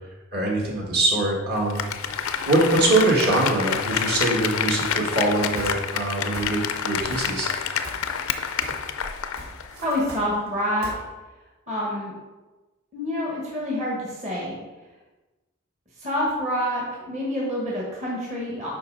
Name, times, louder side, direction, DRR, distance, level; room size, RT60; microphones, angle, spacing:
voice 1, 0.3-1.9 2.5-7.5, right 2 dB, 50° right, -2 dB, 1.8 m, -23 dB
Applause, 1.5-9.7 10.1-10.2, left 7 dB, 80° left, 0.5 m, -28 dB
sound 1, 5.6-6.1 6.3-6.8 7.1-7.6 7.8-8.9 9.1-10.9, right 1 dB, 75° right, 2.1 m, -39 dB
voice 2, 9.8-10.9 11.7-12.1 12.9-14.6 16.0-18.7, equal, 35° right, -5 dB, 1.5 m, -27 dB
8.3 x 5.4 x 3.9 m, 1.2 s
head